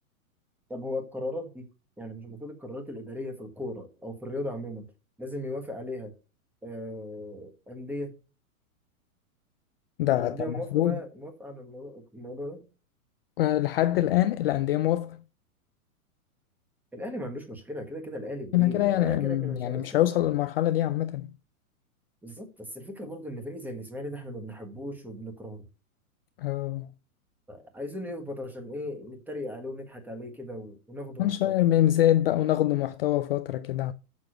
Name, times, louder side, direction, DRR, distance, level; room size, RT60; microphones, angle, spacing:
voice 1, 0.7-1.7 2.0-4.9 5.2-6.1 6.6-8.1 10.1-12.6 16.9-20.0 22.2-25.7 27.5-31.6, left 1 dB, 5° right, 1.4 m, -37 dB
voice 2, 10.0-11.0 13.4-15.2 18.5-21.3 26.4-26.9 31.2-33.9, left 13 dB, 45° left, 0.4 m, -24 dB
7.0 x 5.9 x 6.3 m
hypercardioid pair, 145°, 43 cm